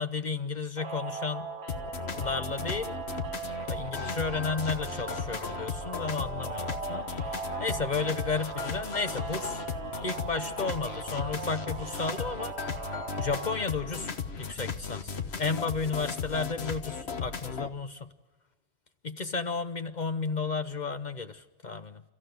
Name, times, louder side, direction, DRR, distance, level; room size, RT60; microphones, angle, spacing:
voice 1, 0.0-1.5 2.2-3.0 3.7-9.6 10.0-12.7 13.2-14.1 14.4-18.1 19.0-22.0, left 4 dB, 45° left, 9 dB, 1.0 m, -33 dB
sound 1, 0.8-13.5, right 4 dB, 70° right, 1.8 m, -39 dB
sound 2, 1.7-17.7, left 5 dB, 70° left, 1.5 m, -36 dB
29.0 x 14.5 x 9.5 m, 1.2 s
omnidirectional pair, 1.1 m